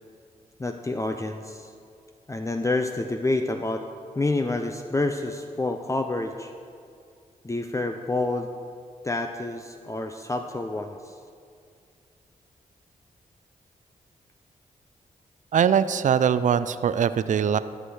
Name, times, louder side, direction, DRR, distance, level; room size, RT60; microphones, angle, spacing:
voice 1, 0.6-1.7 2.3-3.9 4.2-6.5 7.4-8.5 9.0-11.1, left 2 dB, 20° left, 6 dB, 0.5 m, -28 dB
voice 2, 15.5-17.6, right 8 dB, 55° right, 14 dB, 0.4 m, -22 dB
12.5 x 6.2 x 4.9 m, 2.3 s
cardioid pair, 60°, 15 cm